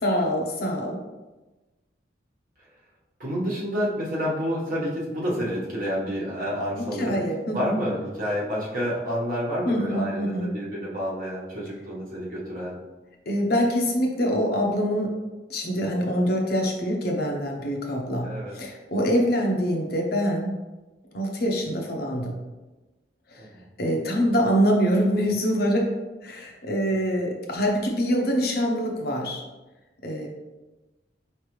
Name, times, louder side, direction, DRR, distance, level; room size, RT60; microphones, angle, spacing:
voice 1, 0.0-1.0 6.8-7.7 9.6-10.5 13.3-15.1 15.5-18.3 18.5-20.6 21.1-22.3 23.3-23.5 23.8-25.9 26.2-29.4 30.0-30.3, equal, 55° left, 0 dB, 0.8 m, -25 dB
voice 2, 3.2-7.2 7.5-12.8 18.2-18.5 23.4-23.7, equal, 50° right, -6 dB, 1.4 m, -29 dB
5.0 x 3.2 x 3.2 m, 1.1 s
head